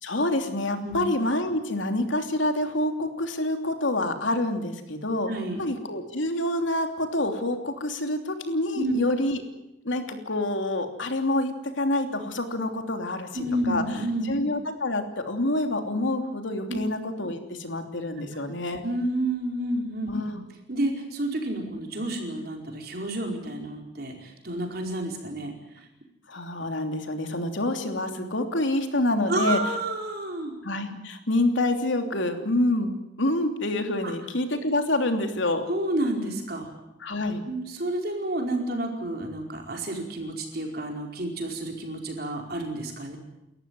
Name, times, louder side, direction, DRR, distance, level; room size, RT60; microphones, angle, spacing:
voice 1, 0.0-5.3 5.6-9.4 9.8-13.8 14.3-18.8 20.1-20.4 26.3-29.6 30.6-32.9 33.2-35.6 37.0-37.4, left 1 dB, 85° left, 5 dB, 3.1 m, -27 dB
voice 2, 5.3-5.6 8.7-9.0 13.3-14.3 16.7-16.8 18.8-20.4 20.7-25.5 29.3-30.5 34.0-34.1 35.7-36.7 37.5-43.2, right 1 dB, 55° right, 1 dB, 4.8 m, -30 dB
29.5 x 14.0 x 9.6 m, 0.95 s
head